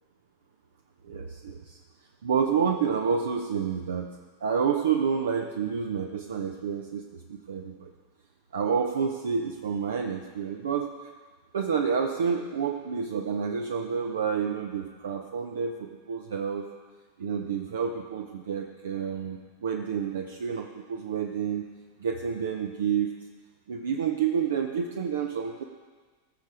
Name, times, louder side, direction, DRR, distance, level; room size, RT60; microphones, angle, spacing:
voice 1, 1.0-1.8 2.2-4.1 4.4-7.9 8.5-11.1 11.5-16.7 17.2-21.7 22.0-23.1 23.7-25.6, right 6 dB, 65° right, 3 dB, 0.8 m, -29 dB
18.5 x 6.8 x 4.9 m, 1.4 s
figure-of-eight pair, 90°, 0 cm